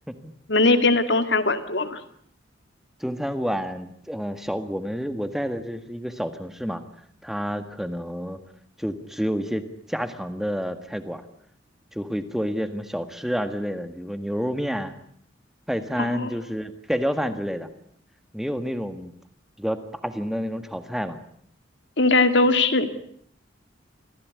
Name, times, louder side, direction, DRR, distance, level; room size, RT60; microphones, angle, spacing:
voice 1, 0.5-2.0 16.0-16.3 22.0-22.9, left 3 dB, 65° left, 10 dB, 2.3 m, -20 dB
voice 2, 3.0-6.8 7.2-8.4 8.8-11.2 11.9-14.9 15.7-17.7 18.3-19.1 19.6-21.2, equal, ahead, 10 dB, 1.7 m, -29 dB
25.5 x 16.5 x 9.5 m, 0.66 s
head